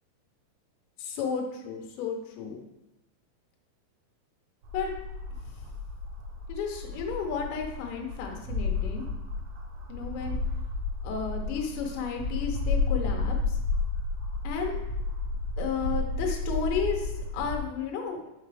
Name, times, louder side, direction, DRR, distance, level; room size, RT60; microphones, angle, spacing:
voice 1, 1.0-2.6 4.7-4.9 6.5-9.1 9.9-10.4 11.0-13.6 14.4-14.8 15.6-18.2, left 6 dB, 75° left, 1 dB, 2.9 m, -33 dB
sound 1, 4.6-17.6, left 3 dB, 80° right, 2.3 m, -32 dB
6.7 x 4.5 x 3.4 m, 0.95 s
omnidirectional pair, 5.4 m